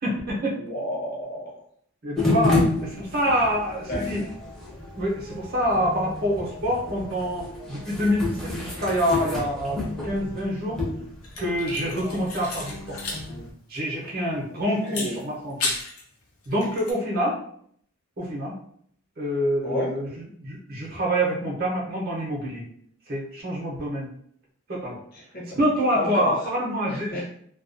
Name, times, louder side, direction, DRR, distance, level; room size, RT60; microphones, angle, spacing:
voice 1, 0.0-0.6 2.0-4.2 5.0-10.8 11.4-13.0 13.7-15.7 16.5-17.4 18.2-18.5 19.2-20.1 20.4-22.6 23.1-24.1 24.7-25.0 25.5-27.2, equal, 45° right, -4 dB, 0.7 m, -26 dB
voice 2, 0.6-1.6 3.9-4.3 14.5-15.3 19.6-19.9 25.1-25.6 25.9-26.4 26.9-27.3, left 1 dB, 40° left, -3 dB, 0.7 m, -32 dB
sound 1, 2.2-13.5, left 2 dB, ahead, 0.6 m, -30 dB
sound 2, 11.2-13.3 13.5-13.6 14.9-16.0 16.4-16.9, left 3 dB, 80° left, 0.6 m, -33 dB
2.3 x 2.2 x 2.5 m, 0.64 s
head